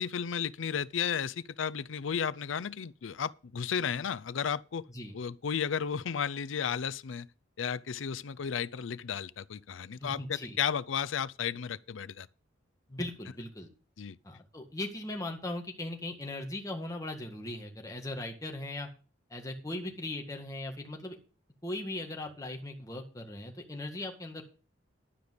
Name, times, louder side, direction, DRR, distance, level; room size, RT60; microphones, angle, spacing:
voice 1, 0.0-4.9 5.1-7.3 7.6-12.3 14.0-14.2, left 7 dB, 85° left, 0.5 m, -33 dB
voice 2, 10.0-10.6 12.9-13.7 14.2-18.9 19.3-21.2 21.6-24.4, left 1 dB, 20° left, 1.8 m, -38 dB
11.5 x 5.1 x 8.0 m
head